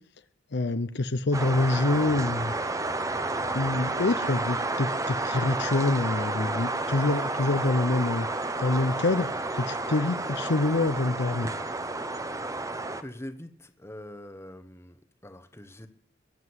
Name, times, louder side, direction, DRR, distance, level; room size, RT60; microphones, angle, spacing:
voice 1, 0.5-2.5 3.5-8.3 8.6-9.3 9.5-11.5, left 2 dB, 55° left, 12 dB, 0.7 m, -26 dB
sound 1, 1.3-13.0, right 2 dB, 15° right, 0.8 m, -31 dB
voice 2, 13.0-15.9, left 1 dB, 15° left, 9 dB, 1.0 m, -43 dB
21.5 x 7.8 x 8.0 m, 0.62 s
head